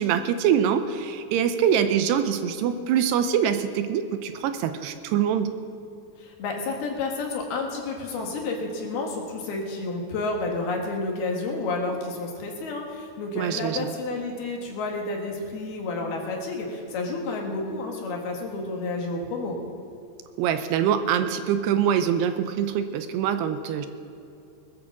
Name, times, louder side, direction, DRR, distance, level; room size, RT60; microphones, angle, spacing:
voice 1, 0.0-5.5 13.4-13.9 20.4-23.9, right 8 dB, 85° right, 9 dB, 2.6 m, -24 dB
voice 2, 6.2-19.6, left 3 dB, 65° left, 1 dB, 3.5 m, -30 dB
20.5 x 8.6 x 7.3 m, 2.7 s
omnidirectional pair, 5.0 m